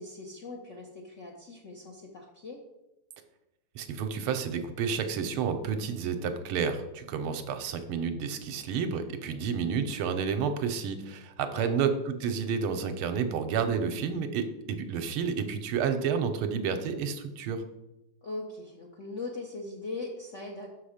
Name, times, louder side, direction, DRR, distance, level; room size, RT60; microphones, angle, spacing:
voice 1, 0.0-2.6 11.5-11.7 18.2-20.7, left 2 dB, 60° left, -1 dB, 0.8 m, -40 dB
voice 2, 3.7-17.6, right 6 dB, 80° right, 8 dB, 1.6 m, -30 dB
6.2 x 5.9 x 5.0 m, 0.94 s
omnidirectional pair, 2.4 m